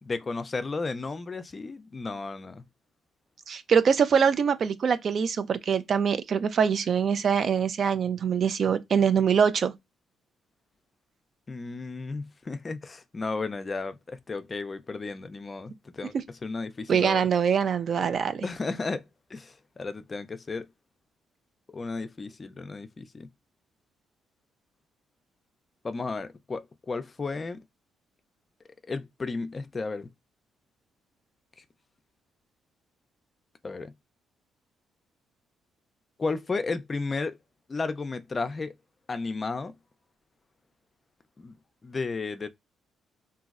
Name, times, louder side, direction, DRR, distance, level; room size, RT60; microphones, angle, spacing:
voice 1, 0.0-2.7 11.5-16.1 16.4-17.3 18.4-19.0 19.3-20.7 21.7-23.3 25.8-27.6 28.9-30.1 33.6-33.9 36.2-37.4 37.7-38.7 39.1-39.7 41.4-41.6 41.8-42.5, left 3 dB, 30° left, 0.4 m, -33 dB
voice 2, 3.5-9.7 16.9-18.4, right 7 dB, 55° right, 0.4 m, -24 dB
3.0 x 2.6 x 2.4 m
cardioid pair, 85°, 0 cm